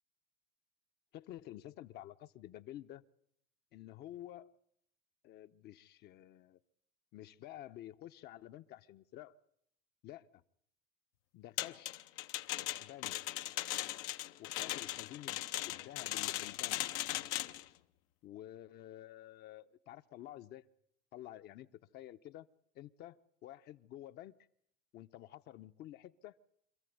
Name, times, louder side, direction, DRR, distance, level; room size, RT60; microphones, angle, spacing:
voice 1, 1.1-3.0 3.7-4.5 5.2-6.6 7.1-9.4 10.0-10.4 11.3-12.0 12.8-13.2 14.4-16.8 18.2-20.6 21.1-21.7 21.9-22.5 22.7-23.2 23.4-24.4 24.9-26.4, left 13 dB, 55° left, 10 dB, 0.9 m, -50 dB
sound 1, 11.6-17.6, left 15 dB, 75° left, 1.0 m, -38 dB
26.5 x 14.0 x 9.4 m, 0.72 s
cardioid pair, 125°, 20 cm